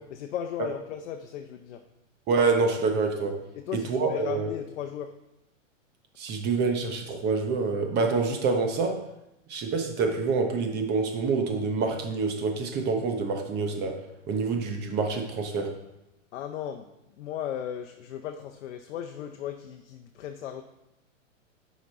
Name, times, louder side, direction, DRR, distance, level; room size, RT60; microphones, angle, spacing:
voice 1, 0.1-1.8 3.6-5.1 16.3-16.9 17.2-20.6, left 10 dB, 65° left, 5 dB, 0.7 m, -36 dB
voice 2, 2.3-3.4 3.7-4.5 6.2-9.0 9.5-14.0 14.3-15.7, right 4 dB, 25° right, 4 dB, 1.0 m, -26 dB
7.6 x 5.2 x 4.2 m, 0.89 s
hypercardioid pair, 140°, 39 cm